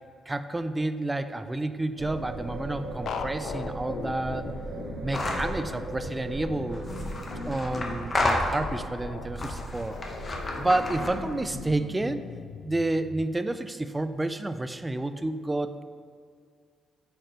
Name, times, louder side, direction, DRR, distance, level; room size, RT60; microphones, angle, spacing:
voice 1, 0.3-4.5 5.0-6.9 7.5-10.0 10.6-12.2 12.6-15.8, right 2 dB, 15° right, 10 dB, 0.3 m, -30 dB
sound 1, 2.0-11.7, right 2 dB, 60° right, 0.7 m, -38 dB
sound 2, 3.1-13.3, left 6 dB, 65° left, 0.4 m, -40 dB
sound 3, 5.1-5.6 6.7-8.9 9.4-11.3, left 2 dB, 35° left, 0.9 m, -31 dB
8.7 x 5.1 x 3.0 m, 2.1 s
cardioid pair, 90°, 0 cm